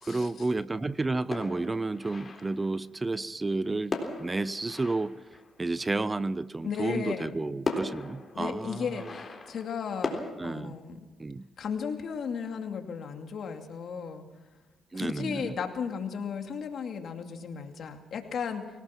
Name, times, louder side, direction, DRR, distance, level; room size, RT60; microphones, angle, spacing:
voice 1, 0.0-5.2 5.6-9.1 10.4-10.8 11.2-11.5 14.9-15.6, right 3 dB, 20° right, 17 dB, 0.6 m, -31 dB
sound 1, 1.3-2.8 3.9-5.9 7.0-7.1 7.7-10.3, left 3 dB, 30° left, 3.8 m, -37 dB
voice 2, 6.6-7.4 8.3-10.2 10.4-11.0 11.6-14.2 14.9-18.6, left 6 dB, 60° left, 4 dB, 2.5 m, -35 dB
25.0 x 18.0 x 6.0 m, 1.2 s
cardioid pair, 90°, 0 cm